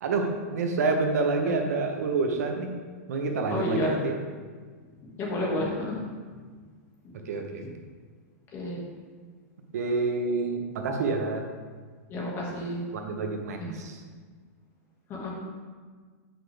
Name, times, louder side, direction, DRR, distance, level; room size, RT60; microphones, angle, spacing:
voice 1, 0.0-2.7 3.1-4.1 7.3-7.6 9.7-11.4 12.9-14.0, right 3 dB, 75° right, 4 dB, 1.0 m, -28 dB
voice 2, 3.5-3.9 5.2-6.0 8.5-8.8 12.1-12.8 13.6-13.7 15.2-15.3, left 1 dB, 25° left, -3 dB, 1.9 m, -30 dB
7.6 x 6.0 x 3.4 m, 1.5 s
supercardioid pair, 145°, 8 cm